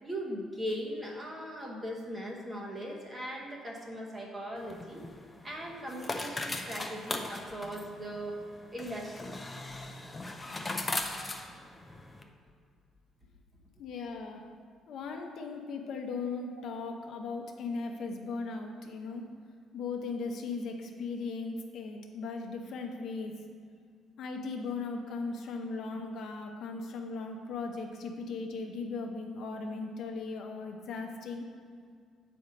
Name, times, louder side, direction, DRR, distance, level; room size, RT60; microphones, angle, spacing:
voice 1, 0.0-5.1 5.4-8.4 8.7-9.4 16.6-16.7 25.9-26.0, equal, 15° right, -1 dB, 1.0 m, -39 dB
sound 1, 4.6-12.2, left 2 dB, 15° left, 0.5 m, -39 dB
voice 2, 13.8-14.4 14.9-19.3 19.7-23.4 24.2-31.5, left 4 dB, 55° left, 3 dB, 0.7 m, -38 dB
7.9 x 4.3 x 5.0 m, 2.1 s
cardioid pair, 160°, 0 cm